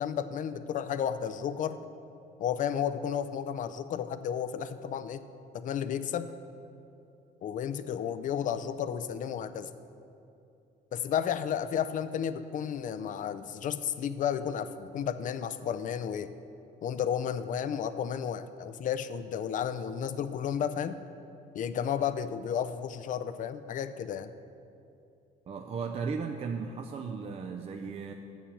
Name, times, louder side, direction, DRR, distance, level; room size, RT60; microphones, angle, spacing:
voice 1, 0.0-1.8 2.4-5.3 5.5-6.3 7.4-9.7 10.9-16.3 16.8-21.0 21.5-24.3, left 8 dB, 50° left, 12 dB, 0.5 m, -32 dB
voice 2, 25.5-28.1, right 5 dB, 35° right, 3 dB, 0.5 m, -36 dB
7.3 x 7.2 x 7.1 m, 2.6 s
cardioid pair, 110°, 17 cm